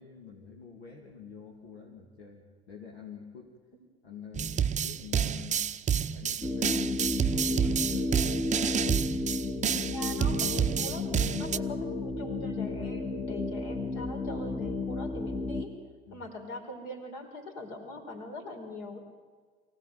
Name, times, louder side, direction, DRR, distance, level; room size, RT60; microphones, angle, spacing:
voice 1, 0.0-3.5 4.0-5.7 6.1-8.2 9.1-9.3 16.1-16.3, left 6 dB, 75° left, -1 dB, 2.5 m, -48 dB
sound 1, 4.3-11.6, right 8 dB, 20° right, 0.7 m, -29 dB
sound 2, 6.4-15.6, left 2 dB, 10° left, 1.2 m, -32 dB
voice 2, 9.8-11.1 11.4-15.8 16.1-19.0, left 1 dB, 55° left, 4 dB, 4.6 m, -42 dB
24.0 x 16.5 x 9.3 m, 1.5 s
figure-of-eight pair, 65°, 32 cm